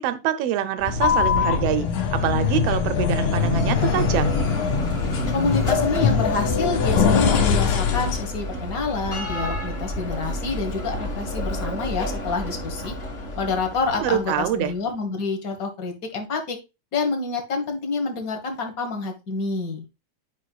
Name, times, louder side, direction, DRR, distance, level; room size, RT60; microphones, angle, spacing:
voice 1, 0.0-4.4 14.0-14.7, right 11 dB, 80° right, 1.4 m, -25 dB
sound 1, 0.8-8.3, left 6 dB, 85° left, 2.7 m, -22 dB
Bell, 3.0-14.8, left 1 dB, 30° left, 1.3 m, -31 dB
voice 2, 5.3-12.9 13.4-16.6 16.9-19.9, left 4 dB, 45° left, 1.2 m, -27 dB
10.5 x 5.3 x 2.3 m
omnidirectional pair, 3.4 m